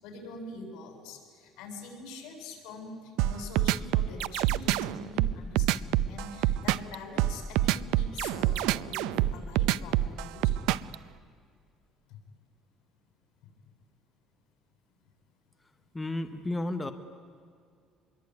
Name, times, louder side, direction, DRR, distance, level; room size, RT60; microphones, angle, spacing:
voice 1, 0.0-10.6 12.1-12.2, left 3 dB, 75° left, 4 dB, 7.5 m, -44 dB
sound 1, 3.2-11.0, right 14 dB, 85° right, 0.6 m, -26 dB
voice 2, 15.9-16.9, left 2 dB, 10° left, 7 dB, 1.0 m, -32 dB
25.5 x 22.5 x 9.7 m, 2.2 s
cardioid pair, 165°, 0 cm